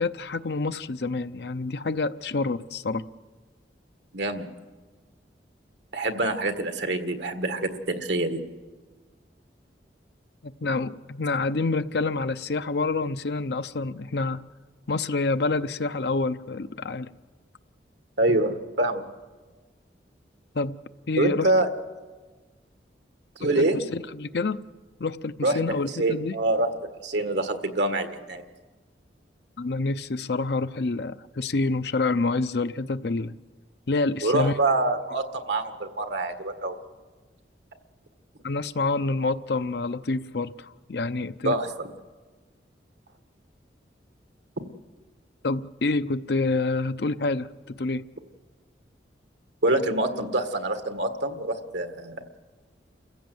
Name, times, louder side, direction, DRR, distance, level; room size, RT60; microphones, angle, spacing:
voice 1, 0.0-3.0 10.4-14.4 14.9-17.1 20.5-20.8 21.1-21.5 23.6-24.6 25.0-26.4 29.6-33.3 33.9-34.6 38.4-41.6 45.4-48.0, left 3 dB, 65° left, 12 dB, 0.6 m, -27 dB
voice 2, 4.1-4.5 5.9-8.4 18.2-19.1 21.2-21.7 23.4-23.8 25.4-25.6 26.0-28.4 34.2-36.7 41.4-41.9 49.6-52.2, right 2 dB, 80° right, 7 dB, 1.8 m, -25 dB
29.0 x 16.0 x 7.9 m, 1.4 s
head